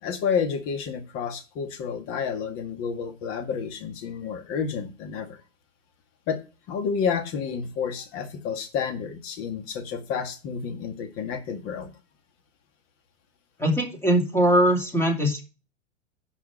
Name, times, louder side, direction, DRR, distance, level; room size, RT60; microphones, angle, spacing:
voice 1, 0.0-5.4 6.3-6.4 6.7-11.9, left 6 dB, 35° left, 2.0 m, -30 dB
voice 2, 13.6-15.4, right 1 dB, 5° left, 2.6 m, -21 dB
10.5 x 4.9 x 6.2 m
figure-of-eight pair, 95°, 38 cm